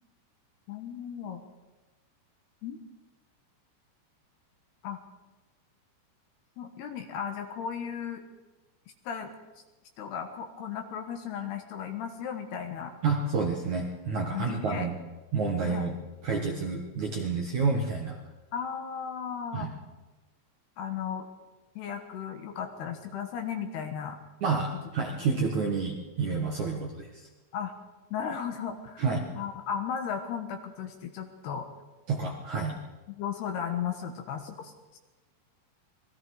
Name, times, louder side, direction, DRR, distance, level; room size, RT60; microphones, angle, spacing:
voice 1, 0.7-1.4 2.6-2.8 4.8-5.0 6.6-8.2 9.0-9.3 10.0-13.0 14.3-14.9 15.6-15.9 18.5-19.7 20.8-21.3 21.8-24.2 26.7-26.8 27.5-27.7 28.1-29.0 29.3-31.7 33.1-35.0, left 7 dB, 65° left, 6 dB, 3.0 m, -35 dB
voice 2, 13.0-14.9 15.3-15.9 16.2-18.2 19.5-19.7 24.4-27.3 29.0-29.3 32.1-32.8, right 4 dB, 60° right, 1 dB, 2.1 m, -29 dB
27.5 x 20.5 x 4.8 m, 1.2 s
omnidirectional pair, 5.6 m